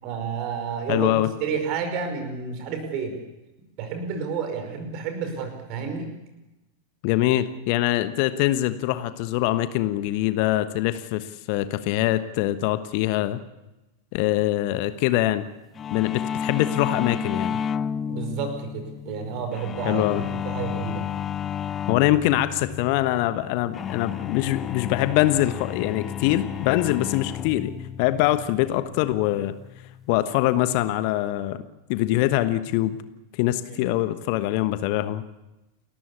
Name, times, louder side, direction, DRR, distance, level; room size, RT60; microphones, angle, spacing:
voice 1, 0.0-3.2 3.8-6.1 18.1-21.1 33.7-33.8, right 6 dB, 40° right, 7 dB, 5.2 m, -30 dB
voice 2, 0.9-1.3 7.0-13.4 14.1-15.4 15.9-17.6 19.8-20.2 21.9-27.7 28.0-29.5 30.1-31.6 31.9-33.0 33.3-35.2, left 15 dB, 45° left, 12 dB, 1.2 m, -23 dB
sound 1, 15.8-30.2, left 8 dB, 25° left, 0.7 m, -32 dB
29.0 x 14.0 x 8.5 m, 1.0 s
figure-of-eight pair, 90°, 0 cm